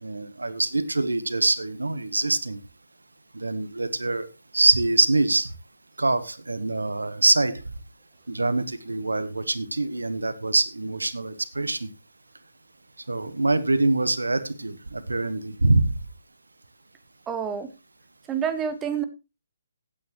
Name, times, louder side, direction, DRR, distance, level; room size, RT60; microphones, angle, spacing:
voice 1, 0.0-2.6 3.3-4.3 4.5-5.5 6.0-7.6 8.3-11.9 13.1-15.9, right 2 dB, 80° right, 14 dB, 1.1 m, -24 dB
voice 2, 17.3-17.7 18.3-19.0, right 7 dB, 15° right, 10 dB, 1.0 m, -27 dB
16.0 x 9.0 x 3.0 m, 0.27 s
figure-of-eight pair, 140°, 0 cm